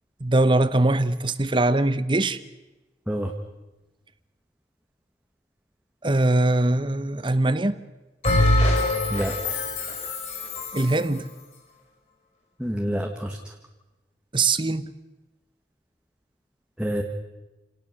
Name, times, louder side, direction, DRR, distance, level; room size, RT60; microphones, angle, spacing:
voice 1, 0.2-2.4 6.0-7.8 10.7-11.3 14.3-14.9, right 2 dB, 25° right, 0.9 m, -22 dB
Bell, 8.2-11.0, left 1 dB, 40° left, 5.7 m, -23 dB
voice 2, 9.1-9.6 12.6-13.4 16.8-17.0, equal, 5° right, 1.5 m, -28 dB
28.5 x 18.5 x 6.6 m
head